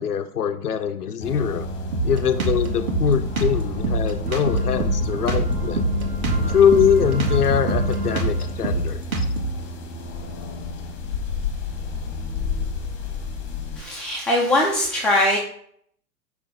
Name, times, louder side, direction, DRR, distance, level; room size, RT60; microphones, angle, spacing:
voice 1, 0.0-1.6 2.0-5.8 6.5-9.3, left 8 dB, 70° left, 8 dB, 0.9 m, -22 dB
sound 1, 1.2-13.8, left 2 dB, 25° left, 1.6 m, -31 dB
sound 2, 1.3-9.0, equal, 80° right, 1.5 m, -31 dB
Drum kit, 1.9-9.6, right 2 dB, 60° right, 1.8 m, -25 dB
voice 2, 13.8-15.4, left 1 dB, ahead, -4 dB, 1.2 m, -21 dB
10.0 x 3.5 x 5.2 m, 0.64 s
figure-of-eight pair, 105°, 47 cm